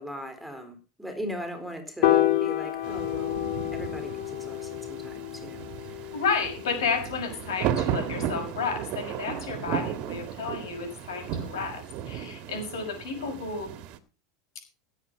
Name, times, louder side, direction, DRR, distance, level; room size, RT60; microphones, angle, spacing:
voice 1, 0.0-6.2, equal, ahead, 7 dB, 3.7 m, -39 dB
Piano, 2.0-8.3, left 14 dB, 65° left, 1.9 m, -29 dB
sound 1, 2.8-14.0, right 10 dB, 50° right, 1.8 m, -35 dB
voice 2, 6.1-13.7, left 5 dB, 85° left, 5 dB, 6.1 m, -31 dB
17.0 x 8.1 x 5.0 m, 0.34 s
hypercardioid pair, 115°, 2 cm